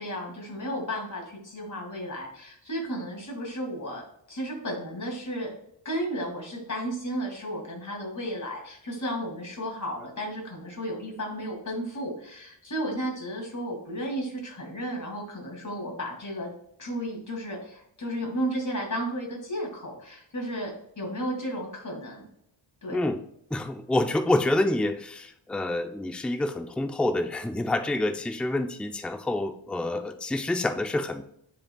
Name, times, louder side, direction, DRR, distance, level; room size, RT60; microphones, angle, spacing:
voice 1, 0.0-5.5 5.8-16.5 16.8-22.3 22.8-23.0, equal, 40° left, 0 dB, 2.5 m, -33 dB
voice 2, 23.5-31.2, left 2 dB, ahead, 7 dB, 0.4 m, -27 dB
9.8 x 5.2 x 2.3 m, 0.72 s
wide cardioid pair, 125°, 45 cm